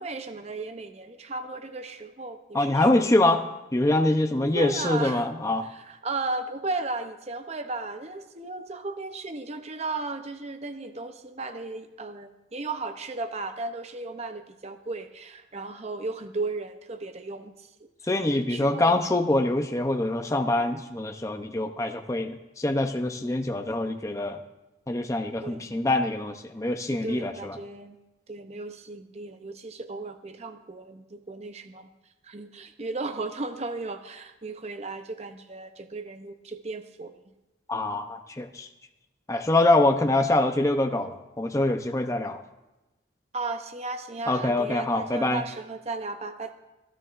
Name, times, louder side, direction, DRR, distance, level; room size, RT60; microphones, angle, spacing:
voice 1, 0.0-3.2 4.4-5.3 5.6-17.7 18.5-19.0 25.4-25.8 27.0-28.0 28.3-31.9 32.2-37.2 43.3-46.5, right 3 dB, 35° right, 8 dB, 0.6 m, -35 dB
voice 2, 2.5-3.4 3.7-5.7 18.1-24.4 24.9-27.6 37.7-38.7 39.3-42.4 44.3-45.4, left 2 dB, 15° left, 5 dB, 0.7 m, -24 dB
28.0 x 9.8 x 2.5 m, 1.0 s
head